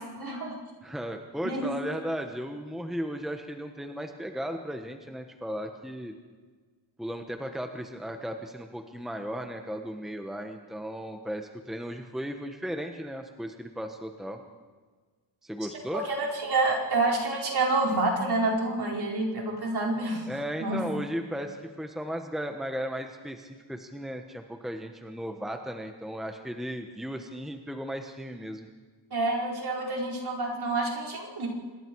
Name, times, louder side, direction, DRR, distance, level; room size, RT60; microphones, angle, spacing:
voice 1, 0.2-0.6 1.4-1.7 15.9-20.3 20.6-20.8 29.1-31.5, right 2 dB, 55° right, -2 dB, 5.2 m, -28 dB
voice 2, 0.8-6.1 7.0-14.4 15.4-16.0 20.3-28.7, equal, ahead, 5 dB, 1.3 m, -36 dB
26.5 x 21.0 x 4.8 m, 1.4 s
wide cardioid pair, 120°, 46 cm